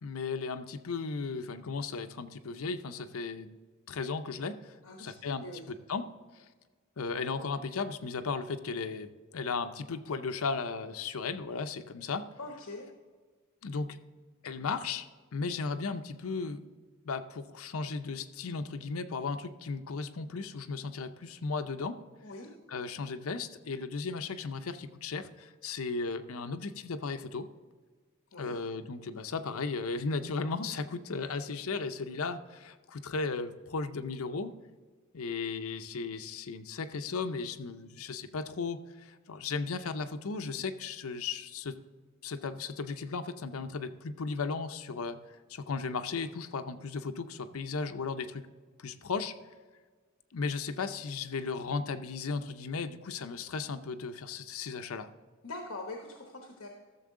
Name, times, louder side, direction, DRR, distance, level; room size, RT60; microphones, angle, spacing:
voice 1, 0.0-3.5 3.9-6.1 7.0-12.3 13.6-14.0 14.4-15.1 15.3-16.6 17.0-22.0 22.7-27.5 28.4-34.5 35.1-41.7 42.2-48.4 48.8-49.3 50.3-55.1, left 4 dB, 85° left, 9 dB, 0.6 m, -36 dB
voice 2, 4.8-5.2 5.4-5.7 12.4-12.9 22.2-22.5 28.3-28.6 55.4-56.7, left 2 dB, 65° left, 2 dB, 1.1 m, -43 dB
14.0 x 6.9 x 3.7 m, 1.4 s
head